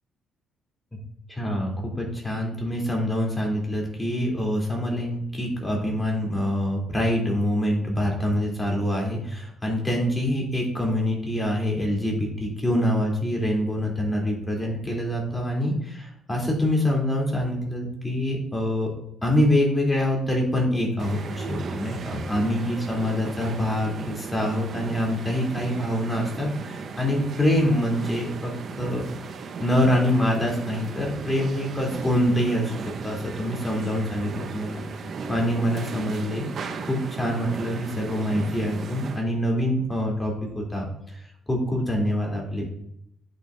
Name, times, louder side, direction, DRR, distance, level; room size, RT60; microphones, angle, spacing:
voice 1, 1.3-18.9 19.2-29.0 29.6-32.7 33.0-34.8 35.3-36.4 36.9-41.2 41.5-42.7, left 1 dB, 10° left, -1 dB, 3.3 m, -25 dB
sound 1, 21.0-39.2, right 5 dB, 60° right, 1.0 m, -36 dB
11.0 x 6.3 x 2.7 m, 0.75 s
cardioid pair, 90°, 0 cm